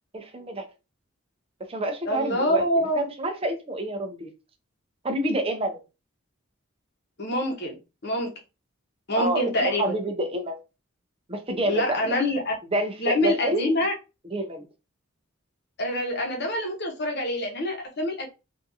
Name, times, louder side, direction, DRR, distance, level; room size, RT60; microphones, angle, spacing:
voice 1, 0.1-0.7 1.7-4.3 5.0-5.8 9.2-10.6 11.3-12.2 12.7-13.7 14.3-14.6, right 1 dB, 25° right, 5 dB, 0.6 m, -28 dB
voice 2, 2.1-3.0 7.2-7.8 8.0-8.3 9.1-9.9 11.7-12.5 13.0-13.9 15.8-18.3, left 1 dB, 50° left, 2 dB, 1.0 m, -25 dB
3.6 x 2.6 x 2.6 m, 0.27 s
head